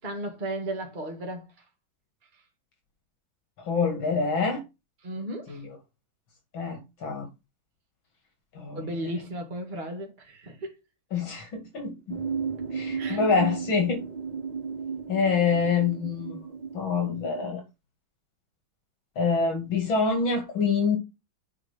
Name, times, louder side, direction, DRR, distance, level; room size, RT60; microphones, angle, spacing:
voice 1, 0.0-1.5 5.0-5.6 8.7-10.7 13.0-13.2, right 1 dB, 25° right, 2.0 m, -34 dB
voice 2, 3.7-4.6 5.5-5.8 6.5-7.3 8.5-8.9 11.1-12.2 12.7-14.0 15.1-16.4 16.7-17.6 19.2-21.0, left 5 dB, 80° left, 3.0 m, -26 dB
sound 1, 12.1-17.4, right 5 dB, 60° right, 0.4 m, -34 dB
8.6 x 4.9 x 3.5 m
omnidirectional pair, 2.1 m